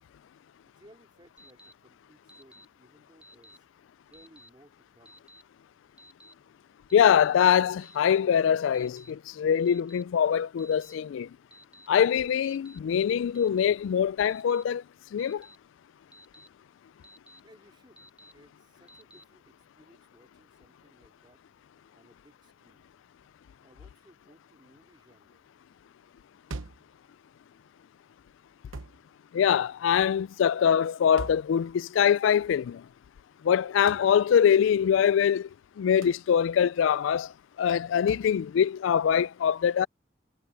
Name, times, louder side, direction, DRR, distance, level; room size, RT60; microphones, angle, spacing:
voice 1, 0.6-3.7 4.1-5.2 17.4-18.0 18.3-21.4 21.9-22.9 23.6-25.5, equal, 25° right, 4.2 m, -60 dB
Alarm, 1.4-1.7 2.3-2.7 3.2-3.6 4.1-4.5 5.1-5.4 6.0-6.3 6.9-7.3 7.8-8.2 8.7-9.1 9.7-10.0 10.6-10.9 11.5-11.9 12.4-12.8 13.4-13.7 14.3-14.6 15.2-15.6 16.1-16.5 17.0-17.4 18.0-18.3 18.9-19.2, equal, 5° right, 1.4 m, -53 dB
voice 2, 6.9-11.3 11.9-14.8 15.1-15.5 29.3-32.8 33.4-35.5 35.8-37.3 37.6-39.9, left 8 dB, 75° left, 0.3 m, -23 dB
sound 1, 26.5-26.9 28.7-29.0 31.2-31.5 33.9-34.1 36.0-36.3 38.1-38.3, right 2 dB, 90° right, 0.9 m, -40 dB
head